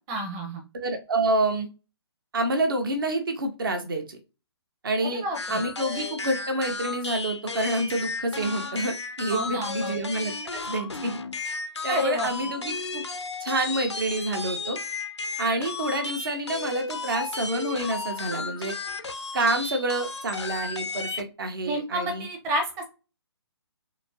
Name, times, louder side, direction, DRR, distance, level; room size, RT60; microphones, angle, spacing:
voice 1, 0.1-0.6 5.0-5.6 9.3-9.9 11.9-12.3 21.6-22.8, equal, 20° right, 3 dB, 0.8 m, -29 dB
voice 2, 0.7-1.7 2.3-4.2 4.8-5.2 5.5-11.2 11.4-13.0 13.4-14.8 15.4-18.7 19.3-22.2, right 2 dB, 50° right, 6 dB, 1.0 m, -28 dB
sound 1, 5.3-21.2, left 4 dB, 80° left, 0.6 m, -34 dB
4.2 x 2.8 x 2.8 m, 0.30 s
figure-of-eight pair, 135°, 14 cm